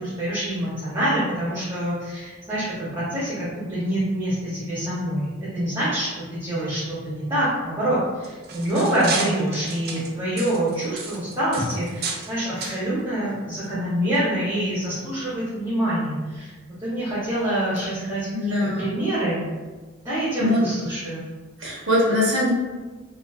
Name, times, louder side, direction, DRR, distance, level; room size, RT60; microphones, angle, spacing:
voice 1, 0.0-16.5 16.8-19.4 20.0-21.2, right 1 dB, 20° right, -11 dB, 0.7 m, -26 dB
sound 1, 8.1-12.3 12.6-12.8 13.5-13.7 14.2-14.3, right 4 dB, 50° right, 0.3 m, -32 dB
voice 2, 18.3-18.8 20.4-20.6 21.6-22.5, left 1 dB, 65° right, -7 dB, 0.9 m, -22 dB
2.5 x 2.5 x 2.3 m, 1.3 s
head